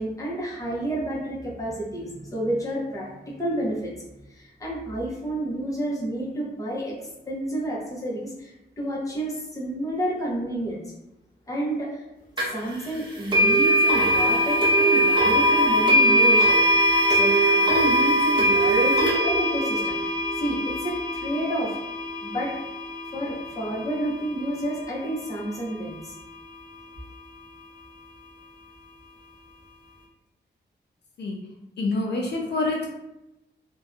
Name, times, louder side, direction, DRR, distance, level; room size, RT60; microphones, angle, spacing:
voice 1, 0.0-3.9 4.3-10.8 11.5-12.0 12.5-16.6 17.1-21.8 22.2-22.5 23.1-26.1, right 1 dB, 20° left, -5 dB, 0.7 m, -30 dB
sound 1, 12.4-12.5 13.3-24.3, equal, 25° right, 0.6 m, -21 dB
voice 2, 31.8-33.0, left 2 dB, 70° left, 0 dB, 0.4 m, -26 dB
2.5 x 2.2 x 2.4 m, 0.91 s
wide cardioid pair, 140°, 18 cm